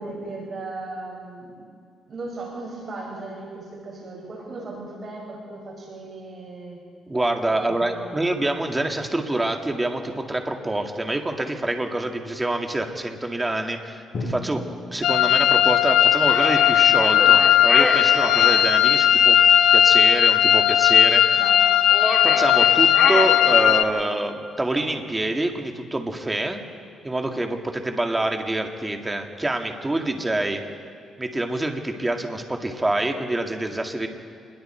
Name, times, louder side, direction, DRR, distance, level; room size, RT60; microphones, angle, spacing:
voice 1, 0.0-1.6 2.1-6.8 7.5-8.3 21.4-21.7, right 2 dB, 45° right, -2 dB, 5.9 m, -36 dB
voice 2, 7.1-14.6 14.9-19.4 19.7-21.5 22.2-26.6 27.0-30.6 31.2-34.1, right 2 dB, 15° right, 3 dB, 2.2 m, -26 dB
Drum, 14.1-18.1, left 2 dB, 55° left, 5.8 m, -38 dB
sound 1, 15.0-23.8, left 10 dB, 80° left, 0.8 m, -17 dB
sound 2, 16.2-18.7 21.9-24.0, left 1 dB, 10° left, 3.1 m, -28 dB
27.5 x 21.5 x 4.5 m, 2.2 s
cardioid pair, 90°, 0 cm